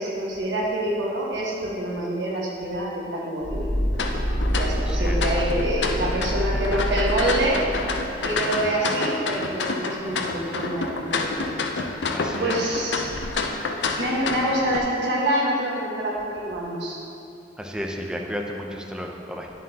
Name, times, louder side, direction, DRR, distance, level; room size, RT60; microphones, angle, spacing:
voice 1, 0.0-3.7 4.5-7.7 8.2-11.3 12.4-13.1 14.0-17.0, right 1 dB, 80° right, -4 dB, 1.5 m, -26 dB
sound 1, 3.4-8.3, equal, 55° left, 1.2 m, -26 dB
sound 2, 3.9-14.8, left 3 dB, 80° left, 0.6 m, -29 dB
voice 2, 4.8-5.4 6.2-6.4 6.9-7.0 8.5-8.7 12.1-12.8 17.6-19.5, equal, 5° right, 1 dB, 0.6 m, -33 dB
10.5 x 7.4 x 2.9 m, 2.6 s
head